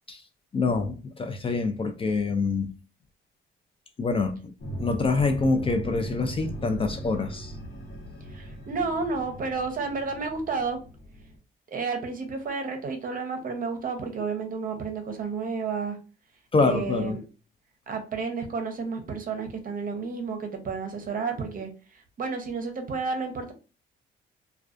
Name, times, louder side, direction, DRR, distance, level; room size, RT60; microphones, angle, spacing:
voice 1, 0.5-2.7 4.0-4.4 4.8-7.5 16.5-17.2, left 3 dB, 30° left, 0.4 m, -25 dB
sound 1, 4.6-11.4, right 1 dB, 55° left, 1.0 m, -39 dB
voice 2, 8.3-10.8 11.7-16.0 16.6-17.2 17.9-21.7 22.2-23.5, right 4 dB, 45° right, 0.7 m, -31 dB
2.3 x 2.2 x 2.4 m
cardioid pair, 90°, 20 cm